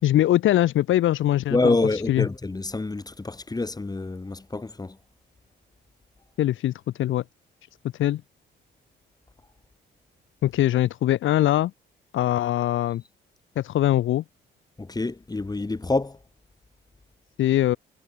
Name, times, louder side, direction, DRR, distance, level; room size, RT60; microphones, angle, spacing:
voice 1, 0.0-2.3 6.4-7.2 8.0-8.2 10.4-11.7 12.1-13.0 13.6-14.2 17.4-17.8, left 13 dB, 80° left, 1.9 m, -22 dB
voice 2, 1.5-4.9 14.9-16.1, left 3 dB, 20° left, 4.1 m, -26 dB
cardioid pair, 90°, 20 cm